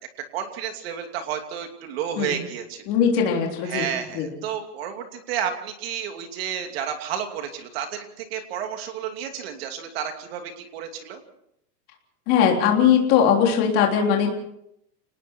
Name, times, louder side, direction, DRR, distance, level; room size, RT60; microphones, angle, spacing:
voice 1, 0.3-2.8 3.6-11.2, right 8 dB, 40° right, 5 dB, 2.9 m, -31 dB
voice 2, 2.9-3.9 4.1-4.3 12.3-14.3, left 8 dB, 25° left, 1 dB, 3.6 m, -20 dB
30.0 x 19.5 x 4.6 m, 0.77 s
supercardioid pair, 175°, 48 cm